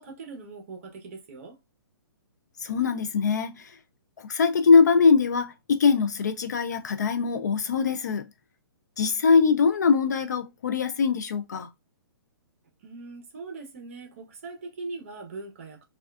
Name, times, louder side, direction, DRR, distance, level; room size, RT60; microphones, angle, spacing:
voice 1, 0.0-1.6 12.8-15.8, right 3 dB, 35° right, 0.7 m, -41 dB
voice 2, 2.6-3.8 4.2-8.3 9.0-11.7, left 5 dB, 45° left, 0.3 m, -22 dB
3.4 x 2.3 x 2.3 m
hypercardioid pair, 175°, 13 cm